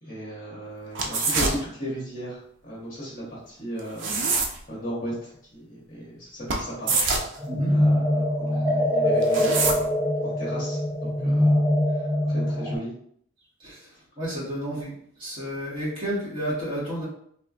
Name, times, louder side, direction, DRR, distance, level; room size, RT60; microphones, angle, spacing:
voice 1, 0.0-4.1 4.7-6.9 7.3-9.9 10.2-11.6 11.9-12.9, equal, 40° left, -7 dB, 1.1 m, -36 dB
sound 1, 0.9-1.6 3.8-4.6 6.5-6.6 6.9-7.4 9.2-9.8, right 3 dB, 60° right, 0.5 m, -24 dB
sound 2, 7.4-12.8, left 1 dB, 5° right, 0.5 m, -23 dB
voice 2, 14.2-14.9 15.2-17.0, equal, 25° right, -9 dB, 1.2 m, -31 dB
3.2 x 2.3 x 2.4 m, 0.65 s
head